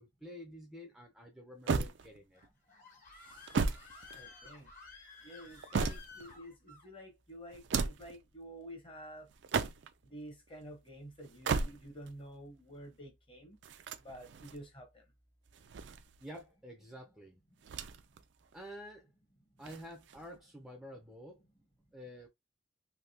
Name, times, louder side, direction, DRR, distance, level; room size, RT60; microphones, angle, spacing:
voice 1, 0.0-2.4 16.2-17.4 18.5-19.1 19.6-21.4 21.9-22.3, equal, ahead, 0.5 m, -49 dB
sound 1, 1.7-2.5 3.3-4.7 5.3-6.4 7.5-8.2 9.3-10.1 11.2-12.1 13.6-14.6 15.5-16.4 17.6-18.2 18.5-18.6 19.6-20.4, right 4 dB, 70° right, 0.4 m, -36 dB
Screaming, 2.4-6.9, left 4 dB, 45° left, 1.2 m, -54 dB
voice 2, 3.1-4.7 5.2-9.3 10.0-13.6 14.0-15.0, equal, 30° left, 1.0 m, -50 dB
3.4 x 2.7 x 2.7 m
head